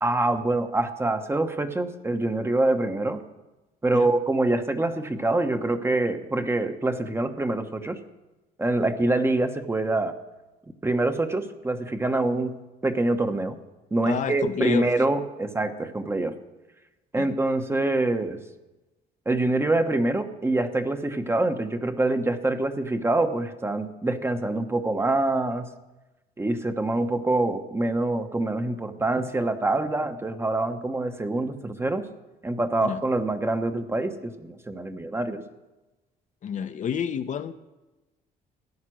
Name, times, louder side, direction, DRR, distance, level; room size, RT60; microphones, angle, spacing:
voice 1, 0.0-3.2 3.8-8.0 8.6-10.1 10.8-13.6 13.9-16.4 17.1-18.4 19.3-25.7 26.4-32.1 32.4-35.4, right 2 dB, 15° right, 8 dB, 1.0 m, -25 dB
voice 2, 14.0-14.9 17.2-17.3 32.8-33.0 36.4-37.5, left 8 dB, 45° left, 9 dB, 0.8 m, -29 dB
14.5 x 10.0 x 6.2 m, 1.1 s
cardioid pair, 110°, 17 cm